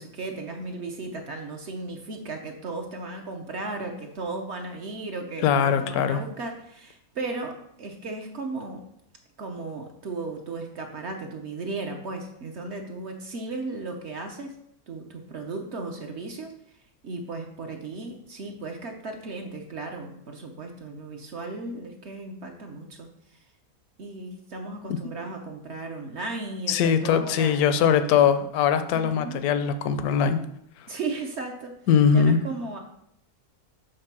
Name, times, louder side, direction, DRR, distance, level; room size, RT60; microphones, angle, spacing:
voice 1, 0.0-8.8 9.4-14.6 14.9-16.5 17.0-23.1 24.0-27.6 28.1-28.2 28.9-29.5 30.9-31.8 32.1-32.8, right 3 dB, 55° right, 3 dB, 0.9 m, -35 dB
voice 2, 5.4-6.2 26.7-30.4 31.9-32.4, left 7 dB, 75° left, 10 dB, 1.1 m, -21 dB
6.5 x 3.4 x 6.0 m, 0.74 s
omnidirectional pair, 1.6 m